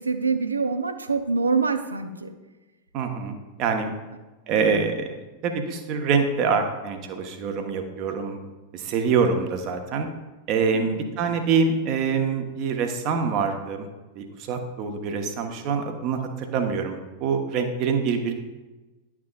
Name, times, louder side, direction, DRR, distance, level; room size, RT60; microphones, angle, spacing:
voice 1, 0.0-2.3 10.7-11.1, right 4 dB, 75° right, 8 dB, 0.5 m, -25 dB
voice 2, 2.9-3.9 4.5-5.1 5.4-8.4 8.7-10.1 10.5-13.9 14.2-18.3, right 5 dB, 40° right, 5 dB, 1.0 m, -25 dB
10.5 x 5.9 x 2.4 m, 1.2 s
figure-of-eight pair, 90°, 0 cm